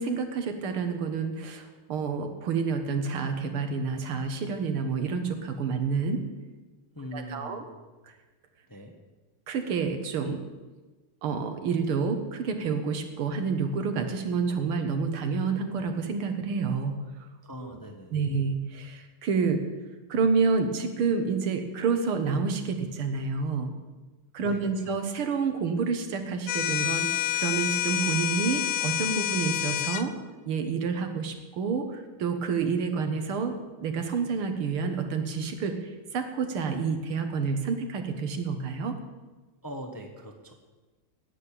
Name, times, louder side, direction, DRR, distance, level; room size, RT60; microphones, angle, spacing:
voice 1, 0.0-6.2 7.1-7.6 9.5-10.4 11.2-17.0 17.6-17.7 18.1-19.6 20.1-23.7 24.3-27.1 27.3-30.1 30.5-35.8 36.1-39.0, right 5 dB, 80° right, 6 dB, 2.1 m, -29 dB
voice 2, 6.9-7.6 8.7-8.9 17.4-18.3 24.4-24.9 39.6-40.5, equal, 15° left, 2 dB, 0.8 m, -41 dB
sound 1, 26.5-30.1, left 14 dB, 80° left, 1.5 m, -28 dB
10.5 x 8.8 x 8.8 m, 1.2 s
omnidirectional pair, 2.4 m